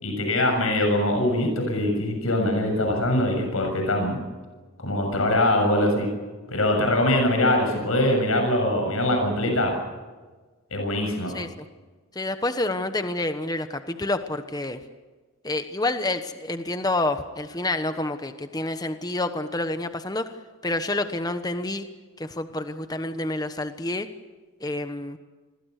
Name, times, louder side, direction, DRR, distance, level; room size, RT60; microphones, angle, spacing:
voice 1, 0.0-4.2 4.8-6.1 6.5-9.8 10.7-11.3, left 1 dB, 85° left, 3 dB, 7.0 m, -23 dB
voice 2, 11.3-11.7 12.1-14.8 15.4-20.3 20.6-21.9 22.2-24.1 24.6-25.2, left 2 dB, 20° left, 9 dB, 1.1 m, -28 dB
28.0 x 22.0 x 6.6 m, 1.3 s
head